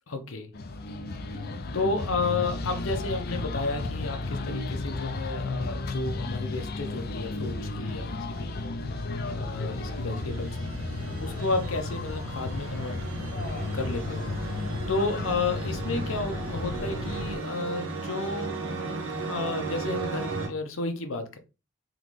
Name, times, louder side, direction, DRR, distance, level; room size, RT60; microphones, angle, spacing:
voice 1, 0.1-0.5 1.3-1.4 1.7-8.6 9.2-10.6 11.2-13.0 13.7-14.3 14.9-18.6 19.3-21.4, left 3 dB, 80° left, 0.7 m, -32 dB
sound 1, 0.5-17.4, left 2 dB, 50° left, 0.5 m, -33 dB
sound 2, 8.9-20.5, right 3 dB, 85° right, 1.0 m, -36 dB
3.8 x 3.1 x 3.1 m
head